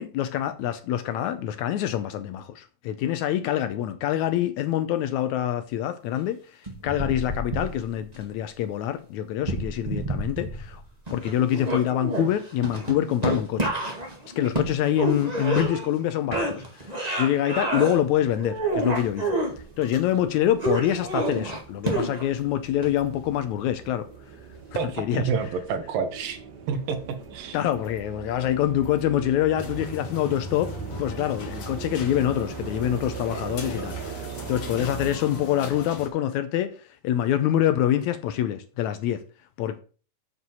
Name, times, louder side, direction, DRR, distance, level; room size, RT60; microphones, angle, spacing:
voice 1, 0.0-10.8 11.1-13.7 14.4-19.4 19.8-24.4 24.7-25.3 27.5-39.2 39.6-39.8, left 11 dB, 80° left, 1.7 m, -26 dB
sound 1, 6.7-8.2 9.4-10.8 11.1-16.0 16.3-18.0 18.4-19.5 20.6-22.4 22.8-22.9, right 2 dB, 15° right, 1.5 m, -28 dB
sound 2, 17.5-35.1, right 7 dB, 65° right, 1.0 m, -41 dB
voice 2, 24.8-26.4 26.7-27.6, right 6 dB, 85° right, 2.9 m, -28 dB
sound 3, 29.6-36.1, left 2 dB, 45° left, 2.0 m, -38 dB
7.8 x 5.1 x 7.0 m
omnidirectional pair, 3.9 m